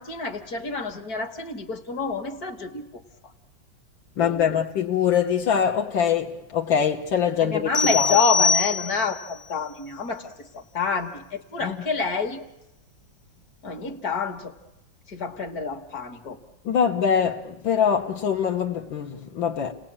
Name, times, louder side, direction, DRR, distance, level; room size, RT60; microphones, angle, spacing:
voice 1, 0.0-2.8 4.2-4.6 7.4-12.4 13.6-14.5 15.1-16.4, left 4 dB, 50° left, 2.0 m, -28 dB
voice 2, 4.2-8.2 11.6-11.8 16.7-19.7, left 8 dB, 80° left, 1.9 m, -23 dB
sound 1, 7.7-9.3, left 5 dB, 30° left, 0.7 m, -23 dB
30.0 x 19.0 x 8.8 m
omnidirectional pair, 2.1 m